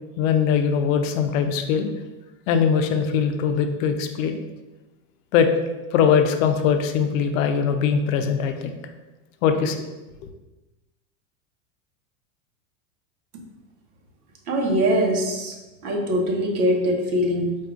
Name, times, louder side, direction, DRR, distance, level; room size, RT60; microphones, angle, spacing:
voice 1, 0.2-1.9 2.5-4.4 5.3-5.5 5.9-8.7 9.4-9.8, left 7 dB, 65° left, 6 dB, 0.5 m, -21 dB
voice 2, 14.5-15.5 15.8-17.6, equal, 85° right, 2 dB, 0.9 m, -22 dB
4.6 x 2.4 x 2.4 m, 1.1 s
supercardioid pair, 130°, 43 cm